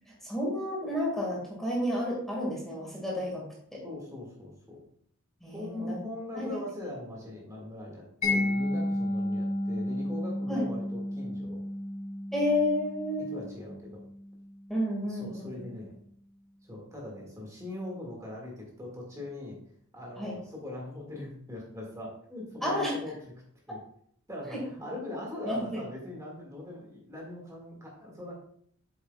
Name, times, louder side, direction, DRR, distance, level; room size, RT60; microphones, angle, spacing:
voice 1, 0.2-3.4 3.7-3.8 5.4-6.0 6.4-6.5 10.5-10.6 12.3-13.4 14.7-15.6 20.2-20.4 22.6-22.9 24.5-24.6 25.4-25.8, left 1 dB, ahead, -4 dB, 2.0 m, -31 dB
voice 2, 3.8-4.8 5.5-11.6 13.2-13.9 15.0-15.9 16.6-19.6 19.9-23.3 23.7-23.8 24.3-28.4, left 1 dB, 15° right, -2 dB, 2.0 m, -41 dB
Mallet percussion, 8.2-15.0, left 1 dB, 35° left, 3.3 m, -33 dB
8.1 x 7.6 x 2.4 m, 0.63 s
head